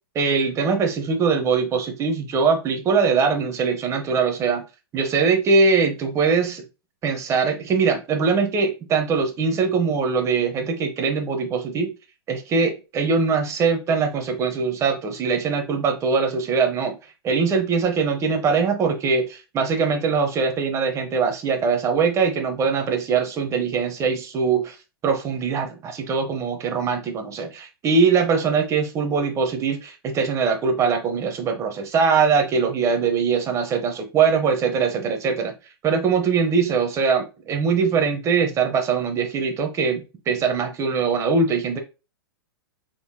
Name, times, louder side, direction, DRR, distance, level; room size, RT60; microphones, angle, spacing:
voice 1, 0.1-4.6 4.9-6.6 7.0-11.9 12.3-17.0 17.2-24.8 25.0-35.5 35.8-41.8, right 5 dB, 25° right, 5 dB, 0.8 m, -22 dB
3.7 x 3.3 x 2.2 m, 0.29 s
hypercardioid pair, 130°, 13 cm